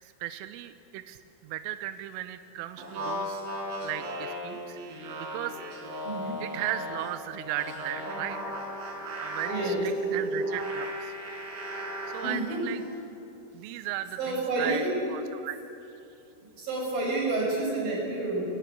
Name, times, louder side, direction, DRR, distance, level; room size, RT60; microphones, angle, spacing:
voice 1, 0.0-3.4 3.8-5.6 6.4-8.5 9.2-11.2 12.1-12.8 13.5-15.6, right 13 dB, 85° right, 11 dB, 3.4 m, -36 dB
sound 1, 2.8-7.1 7.5-12.4, right 1 dB, 65° right, 6.2 m, -35 dB
voice 2, 6.0-6.4 9.5-9.8 12.2-12.6 14.2-14.9 16.6-18.4, right 2 dB, 45° right, -1 dB, 7.3 m, -29 dB
30.0 x 17.5 x 8.4 m, 2.8 s
omnidirectional pair, 5.7 m